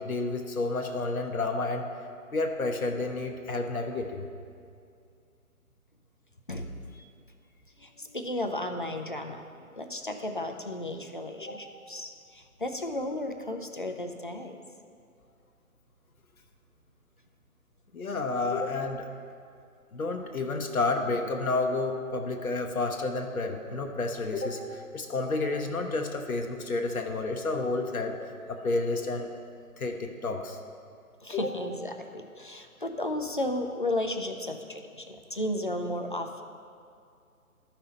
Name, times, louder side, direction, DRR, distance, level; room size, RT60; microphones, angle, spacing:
voice 1, 0.0-1.9 2.3-4.3 11.4-11.6 17.9-19.1 19.9-28.2 28.5-29.3 29.8-30.6 31.3-31.5, left 3 dB, 70° left, 3 dB, 0.9 m, -30 dB
voice 2, 7.8-14.6 31.2-36.4, left 1 dB, 35° left, 5 dB, 0.5 m, -34 dB
13.0 x 5.7 x 4.0 m, 2.4 s
figure-of-eight pair, 150°, 44 cm